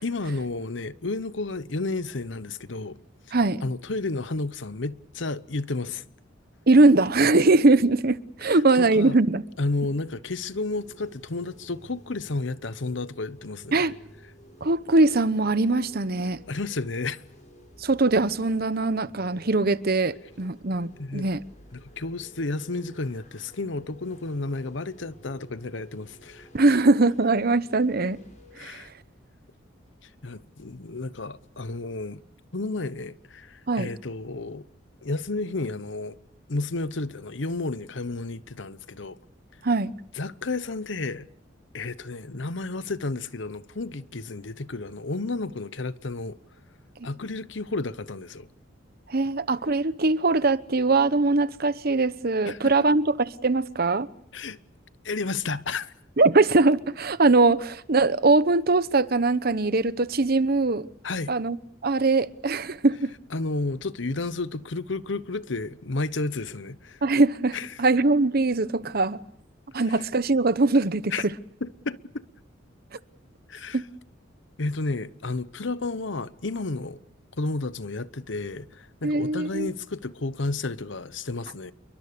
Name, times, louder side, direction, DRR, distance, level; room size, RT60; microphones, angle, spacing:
voice 1, 0.0-3.0 3.3-3.4 3.6-6.0 8.4-9.2 9.6-13.8 16.5-17.2 21.0-21.3 21.7-26.8 28.6-28.9 30.2-32.2 32.5-34.7 35.0-36.2 36.5-39.2 40.1-41.3 41.7-46.4 47.0-48.5 52.4-52.9 54.3-54.6 55.0-55.9 61.0-61.3 63.3-67.0 67.5-67.8 69.7-70.1 71.1-71.2 71.6-72.2 73.5-73.8 74.6-77.0 77.4-81.7, left 3 dB, 65° left, 1.0 m, -32 dB
voice 2, 3.3-3.6 6.7-9.4 13.7-13.9 14.6-16.4 17.8-21.4 26.5-28.2 28.6-28.8 33.7-33.9 39.6-39.9 49.1-54.1 56.2-60.9 61.3-61.6 61.8-63.1 67.0-69.2 69.7-71.1 73.7-73.8 79.0-79.7, right 3 dB, 50° right, 1.0 m, -21 dB
sound 1, 10.8-28.6, equal, 40° left, 7.7 m, -53 dB
29.0 x 23.5 x 6.8 m
head